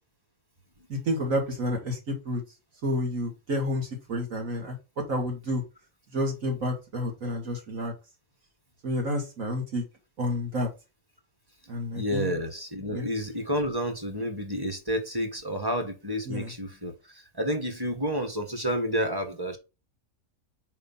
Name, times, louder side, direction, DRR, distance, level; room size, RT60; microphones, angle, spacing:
voice 1, 0.9-2.4 2.8-4.8 5.1-5.6 6.1-7.9 8.8-9.8 10.2-10.7 11.7-12.3 12.9-13.1 16.3-16.5, equal, 65° right, 2.7 m, -30 dB
voice 2, 11.9-19.6, equal, 15° right, 1.4 m, -30 dB
4.9 x 4.3 x 5.6 m
omnidirectional pair, 1.5 m